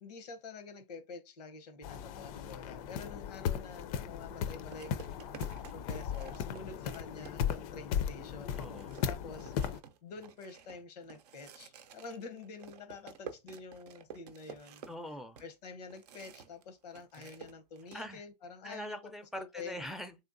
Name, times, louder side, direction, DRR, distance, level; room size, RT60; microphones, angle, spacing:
voice 1, 0.0-5.2 5.7-8.6 9.1-9.5 10.0-14.8 15.4-19.9, left 4 dB, 85° left, 0.7 m, -48 dB
sound 1, 1.8-9.8, left 8 dB, 65° left, 0.4 m, -37 dB
sound 2, 3.7-3.9 4.7-7.7 8.1-8.2 8.5-16.6 16.9-18.1, right 7 dB, 85° right, 0.5 m, -52 dB
voice 2, 8.6-8.9 14.9-15.4 17.2-17.3 17.9-18.2 18.6-20.2, equal, ahead, 0.4 m, -43 dB
3.2 x 2.8 x 2.5 m
hypercardioid pair, 105°, 20 cm